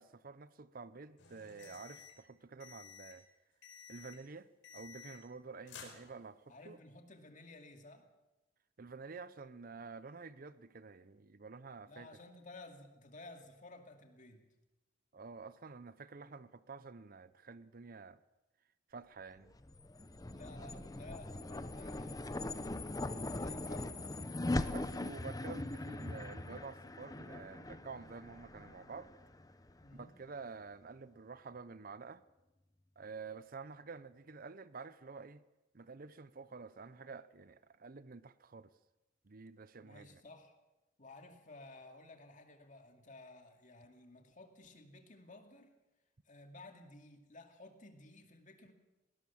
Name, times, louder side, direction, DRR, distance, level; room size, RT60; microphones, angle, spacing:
voice 1, 0.0-3.2 3.9-4.5 4.7-6.8 8.8-12.1 15.1-18.2 18.9-19.5 24.6-29.1 29.9-32.2 33.0-35.4 35.7-38.7 39.2-40.2, right 4 dB, 50° right, 0.7 m, -49 dB
sound 1, 1.2-2.2 2.6-3.2 3.6-4.2 4.6-5.4 5.7-6.5, left 6 dB, 80° left, 5.0 m, -54 dB
voice 2, 6.5-8.1 11.9-14.5 20.2-22.9 23.4-24.1 29.8-30.2 39.8-40.5 41.0-45.7 46.3-48.7, left 2 dB, 45° left, 2.4 m, -55 dB
sound 2, 19.5-30.0, left 2 dB, 20° left, 0.8 m, -41 dB
19.5 x 18.5 x 7.2 m
head